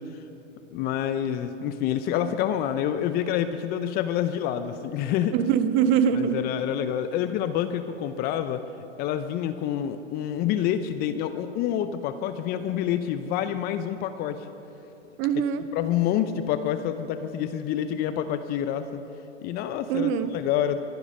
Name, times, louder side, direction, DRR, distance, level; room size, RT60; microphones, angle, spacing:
voice 1, 0.7-5.4 6.1-8.6 9.0-14.5 15.7-18.9 19.4-20.8, left 10 dB, 25° left, 11 dB, 0.6 m, -27 dB
voice 2, 5.3-6.4 15.2-15.6 19.9-20.3, right 8 dB, 35° right, 11 dB, 0.9 m, -23 dB
23.5 x 11.0 x 5.4 m, 2.9 s
hypercardioid pair, 120°, 36 cm